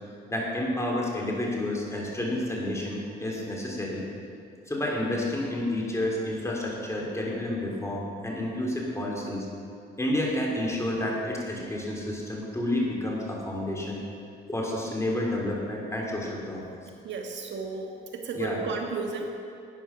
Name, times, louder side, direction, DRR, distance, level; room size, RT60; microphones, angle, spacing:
voice 1, 0.3-4.0 4.7-9.5 10.0-14.0 14.5-16.6 18.3-18.6, left 1 dB, 15° left, -2 dB, 3.3 m, -30 dB
voice 2, 17.0-19.4, right 4 dB, 65° right, 2 dB, 1.5 m, -33 dB
12.5 x 9.2 x 5.9 m, 2.4 s
cardioid pair, 90°, 20 cm